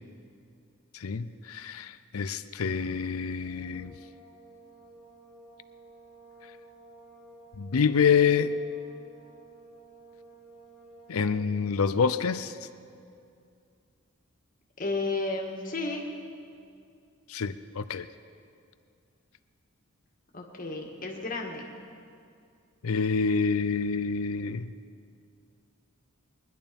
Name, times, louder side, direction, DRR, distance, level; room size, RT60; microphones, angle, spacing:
voice 1, 0.9-3.9 7.6-8.5 11.1-12.5 17.3-18.1 22.8-24.7, left 6 dB, 85° left, 13 dB, 0.5 m, -27 dB
sound 1, 3.4-12.1, right 2 dB, 5° right, 4.7 m, -53 dB
voice 2, 14.8-16.1 20.3-21.7, left 3 dB, 40° left, 0 dB, 1.9 m, -32 dB
22.0 x 11.0 x 5.3 m, 2.4 s
head